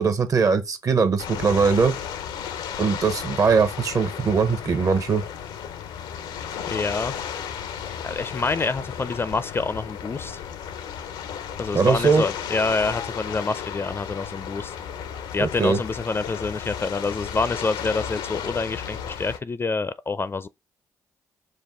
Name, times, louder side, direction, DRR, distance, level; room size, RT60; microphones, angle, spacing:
voice 1, 0.0-1.9 2.8-5.2 11.7-12.2 15.4-15.8, right 5 dB, 50° right, 0.9 m, -21 dB
sound 1, 1.2-19.4, left 8 dB, 85° left, 0.6 m, -34 dB
voice 2, 6.7-7.2 8.0-10.4 11.6-14.8 15.3-20.5, left 3 dB, 30° left, 0.4 m, -27 dB
5.2 x 2.2 x 3.7 m
supercardioid pair, 60°, 8 cm